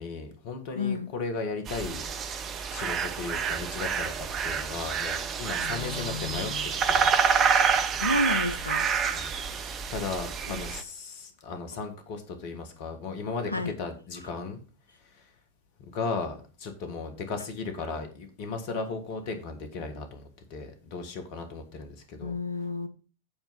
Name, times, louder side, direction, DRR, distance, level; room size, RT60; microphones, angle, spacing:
voice 1, 0.0-6.5 6.9-7.1 9.1-9.3 9.9-14.6 15.0-15.3 15.9-22.4, left 4 dB, 45° left, 6 dB, 1.6 m, -36 dB
voice 2, 0.8-1.1 5.6-6.7 8.0-8.9 10.5-10.7 13.5-13.7 22.2-22.9, left 2 dB, 85° left, 10 dB, 0.8 m, -31 dB
sound 1, 1.7-10.8, right 6 dB, 30° right, 0.8 m, -28 dB
8.8 x 4.5 x 5.4 m, 0.37 s
figure-of-eight pair, 90°, 0 cm